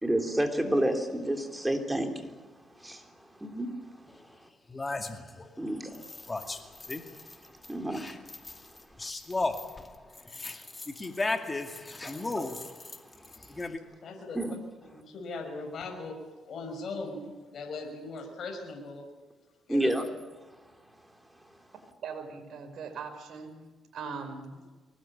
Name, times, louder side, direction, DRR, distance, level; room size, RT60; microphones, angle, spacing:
voice 1, 0.0-2.3 2.8-3.1 3.4-3.7 5.6-6.1 7.7-8.6 12.0-12.6 13.6-13.7 14.4-14.5 19.7-20.1, right 1 dB, 10° right, 5 dB, 3.4 m, -30 dB
sound 1, 4.1-4.2 4.7-5.5 5.9-7.4 7.6-13.8, left 2 dB, 20° left, 2.4 m, -35 dB
voice 2, 14.0-14.4 14.8-19.0 19.7-19.9 24.0-24.2, left 3 dB, 55° left, 2 dB, 5.7 m, -39 dB
voice 3, 22.0-23.6 23.9-24.5, right 6 dB, 65° right, 4 dB, 5.6 m, -40 dB
24.0 x 19.0 x 8.7 m, 1.3 s
cardioid pair, 90°, 0 cm